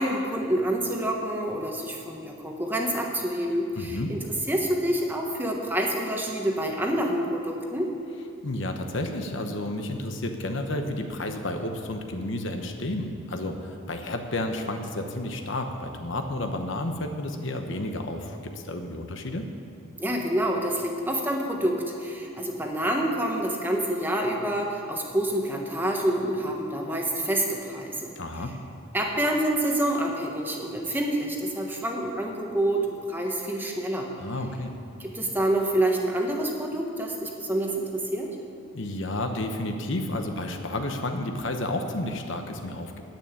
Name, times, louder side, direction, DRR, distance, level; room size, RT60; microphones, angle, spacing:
voice 1, 0.0-7.9 20.0-28.1 28.9-34.1 35.0-38.3, right 1 dB, 10° right, 0 dB, 1.3 m, -27 dB
voice 2, 3.8-4.2 8.4-19.4 28.2-28.5 34.2-34.7 38.7-43.0, left 1 dB, 60° left, 5 dB, 1.0 m, -31 dB
10.5 x 8.9 x 8.8 m, 2.5 s
head